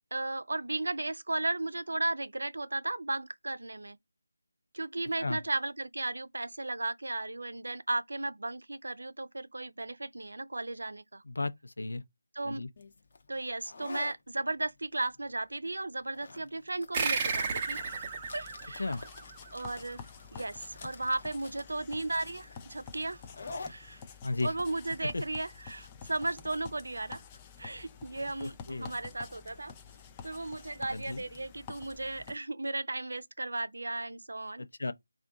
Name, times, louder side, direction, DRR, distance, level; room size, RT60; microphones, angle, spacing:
voice 1, 0.1-4.0 4.7-11.2 12.3-12.6 13.3-18.1 18.3-19.0 19.5-20.0 20.3-23.2 23.7-24.0 24.4-27.2 27.6-29.7 30.2-34.6, right 2 dB, 75° right, 0.6 m, -35 dB
voice 2, 11.3-12.0 12.5-12.7 18.8-19.0 24.2-24.5 28.4-28.9 30.9-31.2 34.6-34.9, left 2 dB, 70° left, 0.7 m, -34 dB
sound 1, 12.8-26.2, left 3 dB, 40° left, 0.7 m, -49 dB
sound 2, 16.9-19.9, right 5 dB, 20° right, 0.7 m, -34 dB
sound 3, 17.4-32.4, left 6 dB, 15° left, 0.4 m, -50 dB
3.5 x 2.4 x 3.9 m
figure-of-eight pair, 170°, 0 cm